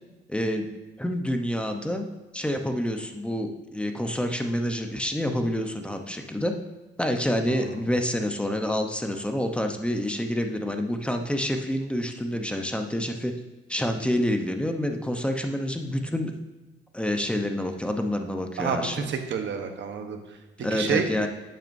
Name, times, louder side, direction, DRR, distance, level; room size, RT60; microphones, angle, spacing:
voice 1, 0.3-0.7 1.0-2.1 2.3-6.5 7.0-13.3 13.7-16.3 16.9-19.1 20.6-21.3, equal, 5° left, 5 dB, 0.8 m, -28 dB
voice 2, 7.5-7.8 18.6-21.1, right 7 dB, 70° right, 5 dB, 1.1 m, -30 dB
10.5 x 7.6 x 2.7 m, 1.2 s
cardioid pair, 90°, 20 cm